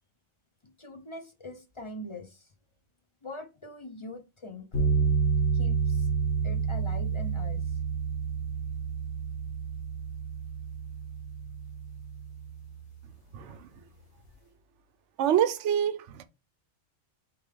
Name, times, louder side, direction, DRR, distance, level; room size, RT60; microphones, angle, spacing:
voice 1, 0.6-2.5 3.2-4.7 5.5-6.1 6.4-7.8, left 1 dB, 35° left, 0.5 m, -43 dB
sound 1, 4.7-12.9, right 5 dB, 70° left, 1.7 m, -29 dB
voice 2, 13.3-13.7 15.2-16.2, right 10 dB, 75° right, 0.9 m, -26 dB
4.5 x 3.6 x 3.3 m
omnidirectional pair, 1.2 m